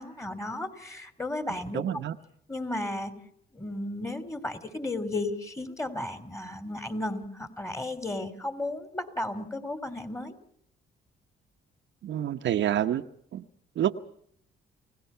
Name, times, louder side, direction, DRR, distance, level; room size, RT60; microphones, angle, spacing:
voice 1, 0.0-2.0 2.5-3.1 3.5-10.3, left 2 dB, 15° left, 10 dB, 3.1 m, -34 dB
voice 2, 1.7-2.2 12.0-13.0 13.3-13.5 13.8-13.9, right 11 dB, 65° right, 7 dB, 1.0 m, -27 dB
30.0 x 17.5 x 5.7 m, 0.66 s
cardioid pair, 90°, 20 cm